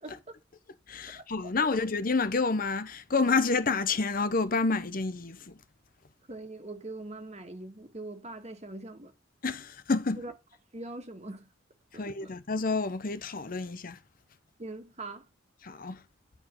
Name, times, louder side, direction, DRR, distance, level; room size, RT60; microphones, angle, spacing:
voice 1, 0.9-5.5 9.4-10.2 11.9-14.0 15.6-16.0, left 4 dB, 45° left, 0.8 m, -29 dB
voice 2, 6.3-9.1 10.2-10.3 10.7-11.5 11.9-12.3 14.6-15.2, right 2 dB, 35° right, 1.9 m, -42 dB
10.5 x 4.8 x 5.5 m
head